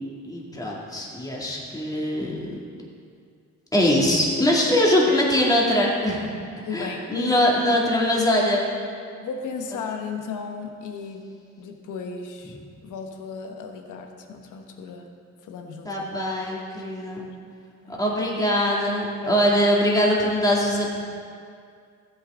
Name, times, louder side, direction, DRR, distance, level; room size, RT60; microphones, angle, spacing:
voice 1, 0.2-2.6 3.7-6.3 6.7-8.7 15.8-17.2 17.9-21.0, left 1 dB, 10° left, -4 dB, 2.2 m, -22 dB
voice 2, 6.6-7.5 9.2-11.3 11.6-15.1 15.4-16.0 17.1-17.3 17.8-18.0 19.2-19.4, left 5 dB, 85° left, 4 dB, 1.2 m, -35 dB
14.5 x 8.1 x 3.7 m, 2.2 s
cardioid pair, 90°, 30 cm